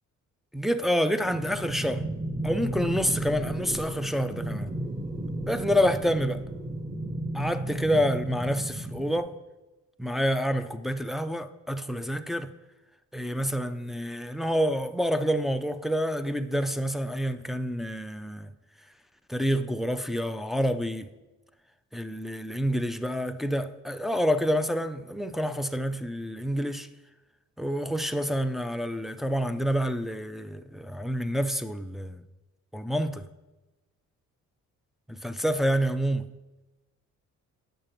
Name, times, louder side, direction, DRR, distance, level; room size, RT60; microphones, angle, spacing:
voice 1, 0.5-2.1 2.4-4.7 5.5-6.4 7.3-9.3 10.0-12.5 13.1-18.5 19.3-21.1 21.9-26.9 27.6-32.2 32.7-33.3 35.1-36.3, equal, ahead, 0.3 m, -28 dB
sound 1, 1.2-9.2, right 1 dB, 25° right, 1.6 m, -34 dB
8.9 x 6.3 x 3.0 m
cardioid pair, 90°, 30 cm